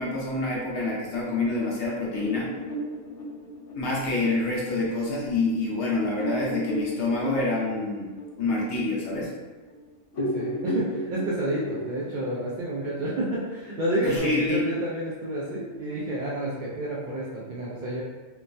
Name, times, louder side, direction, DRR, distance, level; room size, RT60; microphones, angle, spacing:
voice 1, 0.0-2.5 3.7-8.1 8.4-9.3 14.0-14.6, left 2 dB, 65° left, -4 dB, 1.0 m, -27 dB
sound 1, 2.2-5.3 5.7-5.8 6.2-9.8 10.1-14.2, equal, 85° left, 1.0 m, -35 dB
voice 2, 10.2-18.0, right 1 dB, 75° right, -6 dB, 0.4 m, -30 dB
3.0 x 2.1 x 2.5 m, 1.3 s
omnidirectional pair, 1.3 m